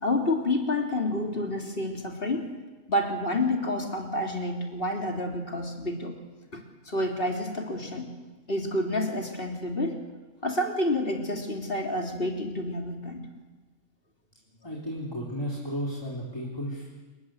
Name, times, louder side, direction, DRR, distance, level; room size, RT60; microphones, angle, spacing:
voice 1, 0.0-2.5 2.9-6.2 6.9-8.1 8.5-10.0 10.4-13.3, left 1 dB, 40° left, 2 dB, 3.5 m, -29 dB
voice 2, 14.6-17.0, equal, 15° left, -3 dB, 4.2 m, -34 dB
28.0 x 21.5 x 8.1 m, 1.2 s
omnidirectional pair, 1.4 m